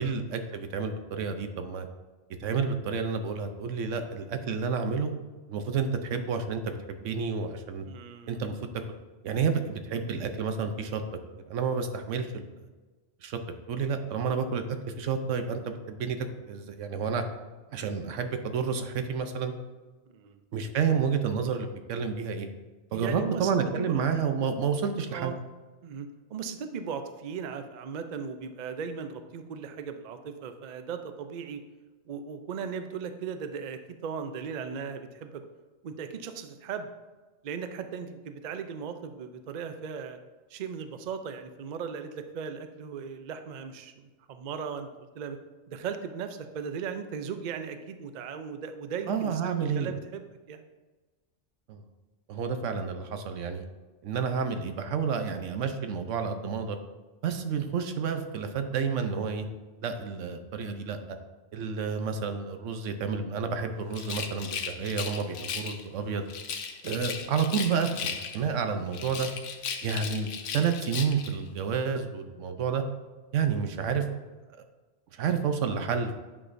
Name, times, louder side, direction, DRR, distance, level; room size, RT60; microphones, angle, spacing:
voice 1, 0.0-1.9 2.4-5.1 5.5-7.9 8.3-8.6 9.2-11.0 11.5-12.5 13.2-13.4 13.7-17.2 17.7-19.5 20.5-22.5 22.9-25.3 49.1-49.9 51.7-51.8 52.3-53.6 54.0-56.8 57.2-59.5 59.8-61.2 61.5-66.3 66.8-69.3 69.8-72.8 73.3-74.0 75.1-76.1, right 6 dB, 85° right, 7 dB, 1.1 m, -30 dB
voice 2, 7.8-8.4 14.1-14.4 20.1-20.4 22.9-24.0 25.1-25.4 25.8-31.6 32.1-35.4 35.8-36.9 37.4-40.2 40.5-45.4 45.7-50.6, right 6 dB, 55° right, 8 dB, 0.5 m, -37 dB
Rattle, 63.9-65.8 66.3-68.5 68.9-71.4, left 7 dB, 80° left, 1.0 m, -36 dB
9.1 x 6.1 x 2.6 m, 1.3 s
omnidirectional pair, 1.2 m